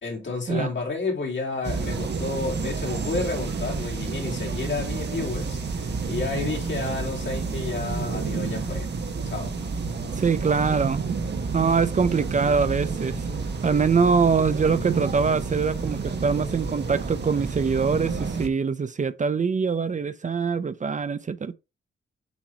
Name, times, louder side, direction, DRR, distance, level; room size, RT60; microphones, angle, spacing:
voice 1, 0.0-8.9 9.2-9.5, left 3 dB, 60° left, 3.2 m, -31 dB
sound 1, 1.6-18.5, right 4 dB, 55° right, 1.3 m, -30 dB
voice 2, 10.2-11.2 11.5-13.2 13.6-21.5, right 5 dB, 35° right, 0.6 m, -23 dB
8.1 x 3.0 x 4.6 m
wide cardioid pair, 105°, 21 cm